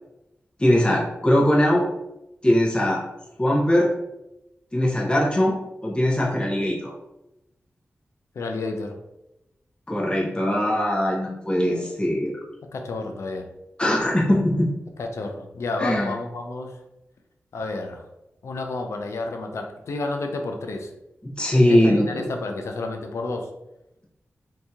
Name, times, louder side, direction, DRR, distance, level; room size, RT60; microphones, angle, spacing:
voice 1, 0.6-1.8 2.4-3.0 3.4-3.9 4.7-5.6 5.8-6.9 9.9-12.3 13.8-14.7 15.8-16.2 21.2-22.3, left 1 dB, 20° left, -3 dB, 0.9 m, -21 dB
voice 2, 8.3-9.0 11.3-11.9 12.7-13.5 15.0-16.8 17.5-18.1 18.4-20.9 21.5-23.5, left 3 dB, 85° left, 4 dB, 0.4 m, -31 dB
2.8 x 2.7 x 3.5 m, 0.91 s
cardioid pair, 55°, 5 cm